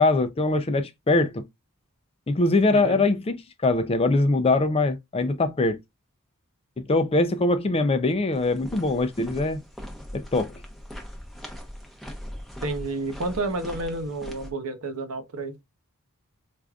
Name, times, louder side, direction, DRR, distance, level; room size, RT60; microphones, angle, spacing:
voice 1, 0.0-1.4 2.3-3.4 3.6-5.8 6.9-9.6 10.1-10.5, left 2 dB, 25° left, 0.4 m, -22 dB
voice 2, 2.7-3.0 12.6-15.6, right 2 dB, 65° right, 0.8 m, -30 dB
sound 1, 8.3-14.5, equal, ahead, 0.8 m, -40 dB
4.7 x 2.5 x 2.3 m
head